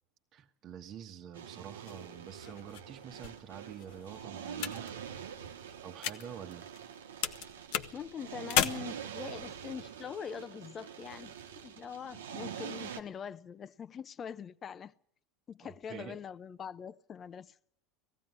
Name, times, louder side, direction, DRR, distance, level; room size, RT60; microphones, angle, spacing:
voice 1, 0.3-5.4 5.8-6.7 15.9-16.2, right 8 dB, 45° right, 1.2 m, -47 dB
sound 1, 1.3-13.0, right 8 dB, 85° right, 1.2 m, -45 dB
sound 2, 1.9-7.0 7.2-8.7, left 11 dB, 65° left, 1.0 m, -36 dB
voice 2, 7.9-11.3 11.6-14.9 15.5-17.6, left 7 dB, 35° left, 0.8 m, -43 dB
19.0 x 15.0 x 9.4 m
hypercardioid pair, 85°, 0 cm